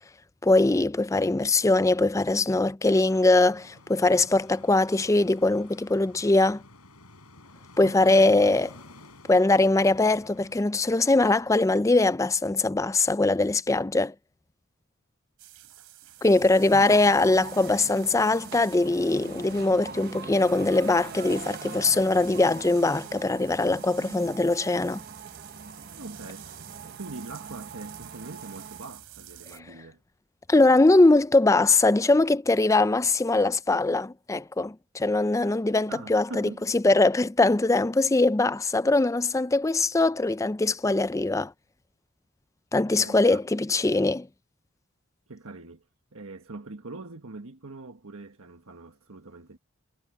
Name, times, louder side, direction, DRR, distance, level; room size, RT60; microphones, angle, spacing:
voice 1, 0.4-6.6 7.8-8.7 9.3-14.1 16.2-25.0 30.5-41.5 42.7-44.3, left 2 dB, 15° left, 0.4 m, -22 dB
sound 1, 2.9-10.6, left 2 dB, 85° left, 7.4 m, -51 dB
voice 2, 7.8-8.5 16.7-17.2 26.0-30.0 35.9-36.6 42.9-43.4 45.3-45.8 46.1-49.6, right 3 dB, 70° right, 1.4 m, -42 dB
sound 2, 15.4-29.6, right 13 dB, 85° right, 3.2 m, -48 dB
sound 3, 16.2-29.0, right 4 dB, 45° right, 0.8 m, -43 dB
head